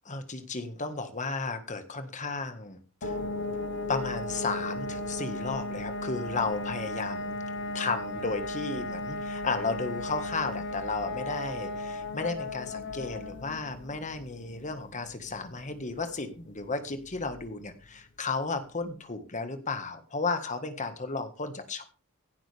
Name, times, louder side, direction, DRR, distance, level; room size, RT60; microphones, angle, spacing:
voice 1, 0.1-3.2 3.9-7.3 7.7-21.8, left 3 dB, 35° left, 8 dB, 1.7 m, -34 dB
sound 1, 3.0-17.6, left 2 dB, 55° left, 1.3 m, -36 dB
16.5 x 11.5 x 3.5 m, 0.35 s
head